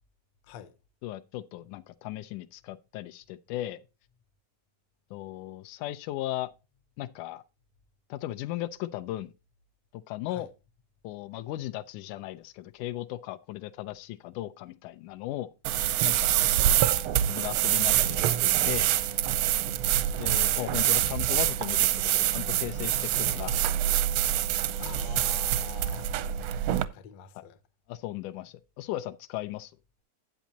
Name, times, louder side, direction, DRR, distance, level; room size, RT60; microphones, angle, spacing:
voice 1, 1.0-3.8 5.1-6.5 7.0-7.4 8.1-9.3 10.1-10.5 11.0-15.5 16.0-16.4 17.3-18.9 20.2-23.6 27.4-27.5 27.9-29.7, left 15 dB, 90° left, 2.1 m, -36 dB
sound 1, 15.6-26.8, right 12 dB, 80° right, 1.5 m, -26 dB
voice 2, 16.5-16.8 24.8-26.1 26.9-27.6, left 10 dB, 70° left, 1.9 m, -45 dB
10.5 x 8.2 x 2.8 m
omnidirectional pair, 3.4 m